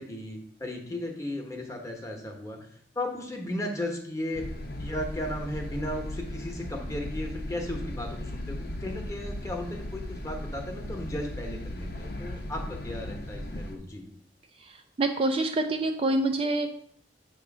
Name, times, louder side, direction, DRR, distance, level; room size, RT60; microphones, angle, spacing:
voice 1, 0.0-2.6 2.9-4.4 4.7-14.0, left 1 dB, 15° left, 1 dB, 1.0 m, -35 dB
sound 1, 4.3-13.8, left 1 dB, 55° left, 0.7 m, -37 dB
voice 2, 14.6-16.7, right 2 dB, 30° right, 5 dB, 0.4 m, -27 dB
7.6 x 3.0 x 5.9 m, 0.65 s
head